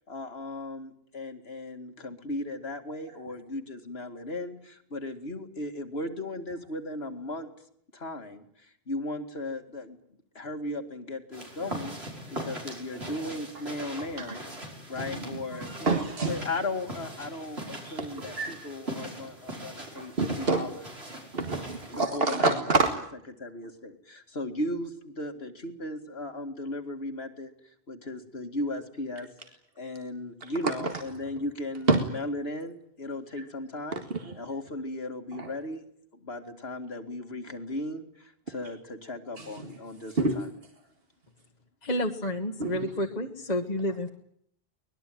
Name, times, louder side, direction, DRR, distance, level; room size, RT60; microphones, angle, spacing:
voice 1, 0.0-7.5 7.9-10.0 10.3-14.5 14.9-15.9 16.2-20.9 21.9-22.6 23.4-27.5 27.9-29.3 29.8-34.0 34.4-35.8 36.1-40.5, left 2 dB, 80° left, 7 dB, 2.6 m, -36 dB
sound 1, 11.3-22.1, right 1 dB, 85° right, 5.9 m, -41 dB
voice 2, 15.0-16.3 17.8-18.5 20.0-20.7 21.3-22.9 30.4-30.9 31.9-32.0 33.9-34.4 35.4-35.5 39.4-39.7 40.2-40.4 42.6-42.9, right 3 dB, 70° right, 5 dB, 2.2 m, -28 dB
voice 3, 41.8-44.1, left 1 dB, 45° left, 4 dB, 1.6 m, -30 dB
24.0 x 20.5 x 9.4 m, 0.68 s
omnidirectional pair, 1.0 m